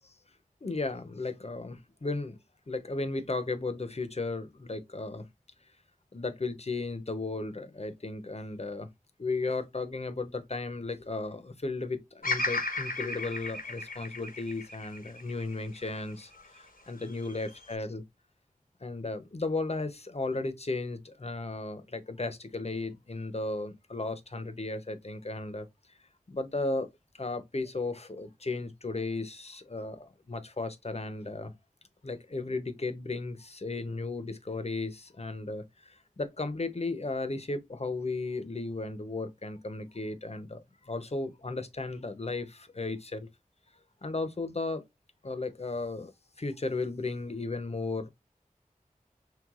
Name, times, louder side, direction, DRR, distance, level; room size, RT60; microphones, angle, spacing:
voice 1, 0.6-1.8 2.0-2.4 2.7-5.3 6.1-8.9 9.2-18.0 18.8-25.7 26.3-26.9 27.2-31.5 32.0-35.6 36.2-43.3 44.0-44.8 45.2-46.1 46.4-48.1, left 3 dB, 45° left, 0.7 m, -35 dB
Bird vocalization bird call bird song, 12.2-16.5 17.0-17.8, left 2 dB, 80° left, 0.8 m, -35 dB
4.7 x 3.3 x 2.4 m
wide cardioid pair, 45°, 15 cm